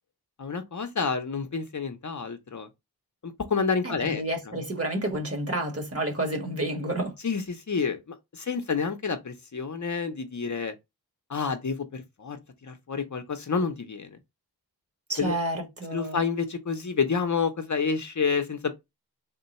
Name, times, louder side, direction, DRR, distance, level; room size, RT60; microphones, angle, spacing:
voice 1, 0.4-2.7 3.2-4.2 7.2-8.0 8.3-10.7 11.3-14.1 15.2-15.3 15.9-18.7, left 5 dB, 50° left, 0.6 m, -29 dB
voice 2, 3.8-7.1 15.1-16.2, right 1 dB, 35° right, 1.3 m, -30 dB
3.7 x 2.2 x 4.0 m
wide cardioid pair, 80°, 39 cm